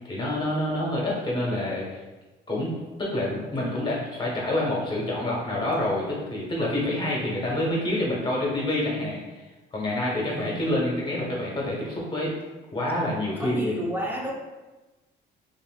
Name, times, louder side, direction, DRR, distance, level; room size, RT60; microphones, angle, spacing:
voice 1, 0.0-2.0 2.5-2.7 3.0-12.3 12.7-13.7, left 1 dB, 25° left, -4 dB, 1.2 m, -27 dB
voice 2, 10.2-10.6 13.4-14.3, equal, 10° right, -2 dB, 0.8 m, -31 dB
5.2 x 2.7 x 2.4 m, 1.1 s
cardioid pair, 105°, 18 cm